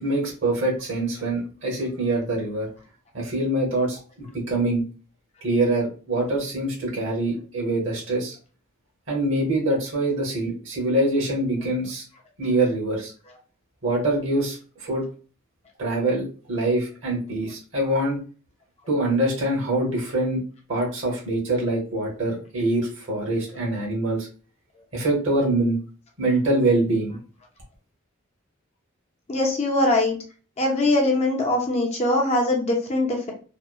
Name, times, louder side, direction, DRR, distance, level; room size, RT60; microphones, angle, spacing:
voice 1, 0.0-2.7 3.1-4.8 5.4-8.4 9.1-12.0 12.4-13.1 13.8-15.0 15.8-18.2 18.9-20.4 20.7-24.3 24.9-25.8 26.2-27.2, right 2 dB, 60° right, -2 dB, 0.9 m, -24 dB
voice 2, 29.3-30.2 30.6-33.3, left 2 dB, 30° left, 1 dB, 0.5 m, -22 dB
2.8 x 2.0 x 2.3 m, 0.38 s
head